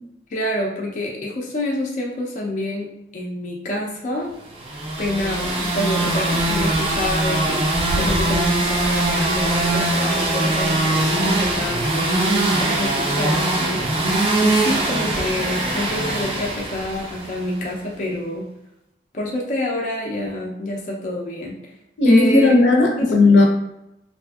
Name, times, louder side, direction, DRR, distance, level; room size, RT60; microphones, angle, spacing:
voice 1, 0.3-4.4 5.0-18.5 19.1-21.6 22.0-22.5 23.0-23.1, left 1 dB, 45° left, -2 dB, 0.4 m, -27 dB
sound 1, 4.6-17.5, right 2 dB, 35° right, 0.4 m, -21 dB
voice 2, 22.0-23.4, left 2 dB, 85° left, 0 dB, 0.6 m, -14 dB
2.6 x 2.5 x 2.3 m, 0.86 s
head